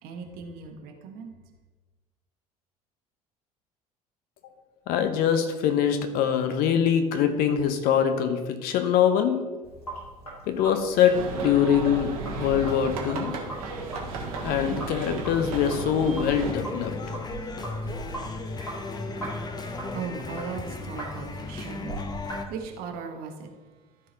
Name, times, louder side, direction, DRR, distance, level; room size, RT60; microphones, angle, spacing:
voice 1, 0.0-1.3 19.4-21.9 22.5-23.5, right 5 dB, 50° right, 4 dB, 1.1 m, -38 dB
voice 2, 4.9-9.4 10.5-13.3 14.4-16.9, left 8 dB, 50° left, 8 dB, 1.0 m, -23 dB
Sink (filling or washing), 9.6-22.5, right 1 dB, 85° left, 2.1 m, -41 dB
sound 1, 11.1-16.5, right 3 dB, 70° right, 1.7 m, -34 dB
sound 2, 16.4-22.4, left 3 dB, 20° left, 0.8 m, -36 dB
13.0 x 4.4 x 3.9 m, 1.3 s
figure-of-eight pair, 65°, 19 cm